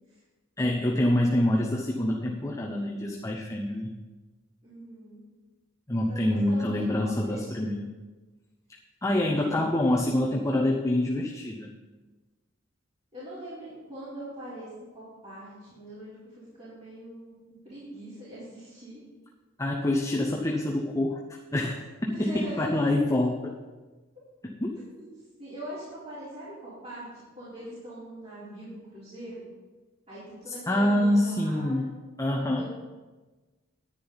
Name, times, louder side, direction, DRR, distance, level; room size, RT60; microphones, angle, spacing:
voice 1, 0.6-3.9 5.9-7.9 9.0-11.7 19.6-21.2 21.5-23.6 24.6-24.7 30.5-31.9 32.2-32.6, left 1 dB, 15° left, -1 dB, 0.8 m, -26 dB
voice 2, 4.6-5.2 6.1-7.7 9.4-9.7 13.1-17.4 17.6-19.0 22.1-22.8 25.0-25.1 25.4-29.4 30.1-31.8 32.6-32.7, right 1 dB, 30° right, -12 dB, 3.9 m, -42 dB
10.0 x 9.8 x 4.1 m, 1.3 s
head